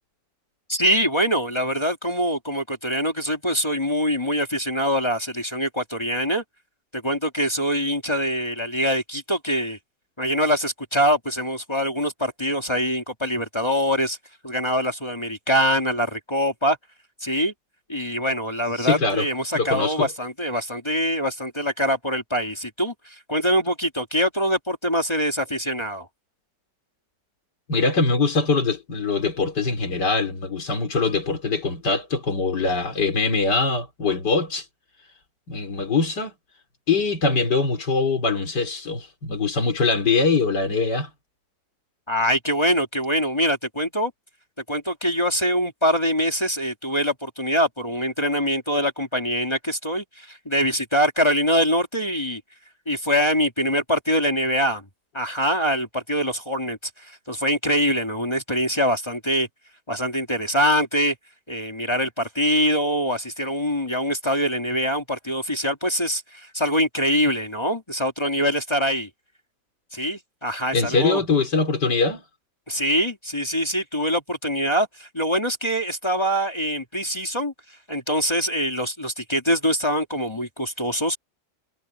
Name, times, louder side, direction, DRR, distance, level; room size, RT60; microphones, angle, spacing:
voice 1, 0.7-6.4 6.9-9.8 10.2-14.2 14.4-16.8 17.2-17.5 17.9-26.1 42.1-44.1 44.7-52.4 52.9-54.8 55.1-59.5 59.9-61.2 61.5-69.1 69.9-71.2 72.7-77.5 77.9-81.2, equal, 15° left, 1.9 m, -24 dB
voice 2, 18.8-19.3 19.5-20.1 27.7-34.6 35.5-36.3 36.9-41.1 70.7-72.2, left 4 dB, 70° left, 4.3 m, -22 dB
omnidirectional pair, 1.9 m